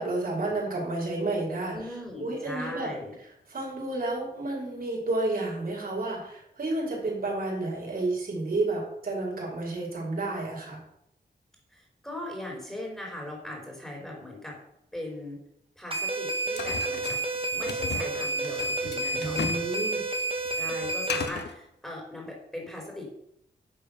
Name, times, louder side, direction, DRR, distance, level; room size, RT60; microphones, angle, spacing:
voice 1, 0.0-1.7 2.2-2.9 3.5-10.8 19.2-20.0, right 2 dB, 60° right, -3 dB, 5.7 m, -31 dB
voice 2, 1.7-3.1 11.7-14.5 14.9-15.4 15.8-17.2 17.5-19.7 20.5-23.1, left 1 dB, 5° left, -2 dB, 4.5 m, -39 dB
sound 1, 15.9-21.3, right 2 dB, 30° right, 2.0 m, -30 dB
sound 2, 16.6-19.7 20.0-21.6, left 6 dB, 85° left, 1.0 m, -36 dB
11.0 x 6.8 x 7.0 m, 0.76 s
wide cardioid pair, 95°, 17 cm